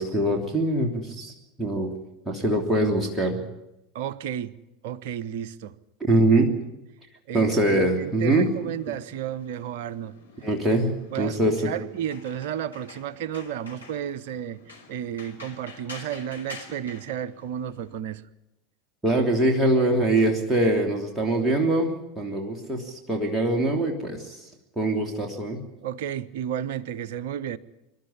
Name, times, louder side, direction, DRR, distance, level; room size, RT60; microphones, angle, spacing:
voice 1, 0.0-1.3 1.6-1.9 2.2-3.4 6.0-6.5 7.3-8.5 10.4-11.7 19.0-24.5 24.8-25.6, right 1 dB, 10° right, 0 dB, 3.0 m, -23 dB
voice 2, 3.9-4.6 4.8-5.8 7.3-10.1 11.1-14.6 14.9-18.2 25.8-27.6, right 10 dB, 55° right, 16 dB, 0.8 m, -32 dB
sound 1, 8.0-18.0, left 3 dB, 80° left, 3.4 m, -48 dB
25.5 x 12.0 x 9.8 m, 0.92 s
figure-of-eight pair, 80°, 0 cm